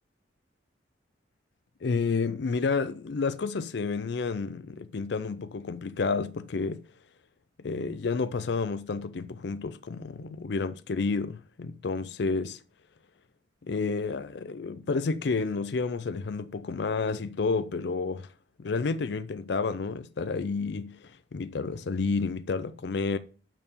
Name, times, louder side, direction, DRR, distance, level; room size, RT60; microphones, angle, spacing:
voice 1, 1.8-6.8 7.6-12.6 13.6-18.3 18.6-23.2, left 4 dB, 65° left, 0.5 m, -30 dB
8.8 x 4.6 x 6.7 m
head